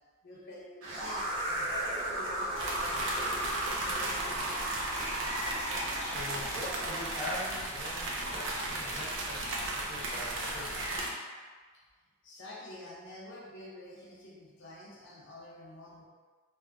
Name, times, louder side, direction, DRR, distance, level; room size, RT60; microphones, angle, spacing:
voice 1, 0.2-3.6 3.8-4.5 11.7-11.8 12.2-16.0, left 1 dB, 65° left, -5 dB, 0.5 m, -48 dB
sound 1, 0.8-7.5, right 1 dB, 80° right, 0.9 m, -36 dB
sound 2, 2.5-11.1, right 1 dB, 65° right, 0.5 m, -35 dB
voice 2, 6.0-11.0, left 1 dB, 5° right, -13 dB, 1.2 m, -42 dB
3.2 x 2.1 x 2.4 m, 1.5 s
head